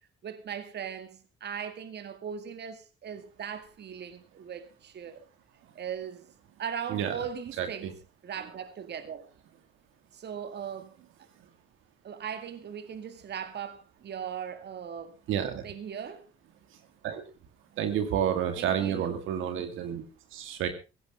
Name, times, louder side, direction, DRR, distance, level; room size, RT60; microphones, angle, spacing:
voice 1, 0.2-5.3 5.8-6.3 6.6-8.0 8.2-9.3 10.1-11.0 12.0-15.2 15.6-16.3 18.6-19.2, right 8 dB, 60° right, 2.1 m, -39 dB
voice 2, 7.6-7.9 15.3-15.6 17.0-17.2 17.8-20.7, right 9 dB, 90° right, 2.2 m, -30 dB
16.0 x 15.5 x 3.6 m
cardioid pair, 90°, 20 cm